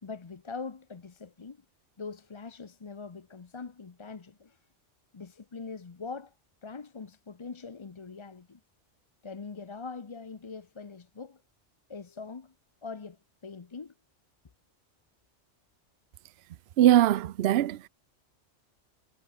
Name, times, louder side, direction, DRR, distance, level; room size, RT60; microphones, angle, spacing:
voice 1, 0.0-1.6 2.0-4.6 5.1-6.3 6.6-8.6 9.2-11.4 11.9-12.5 12.8-13.9, left 4 dB, 30° left, 0.7 m, -42 dB
voice 2, 16.8-17.9, right 12 dB, 65° right, 0.8 m, -21 dB
omnidirectional pair, 1.2 m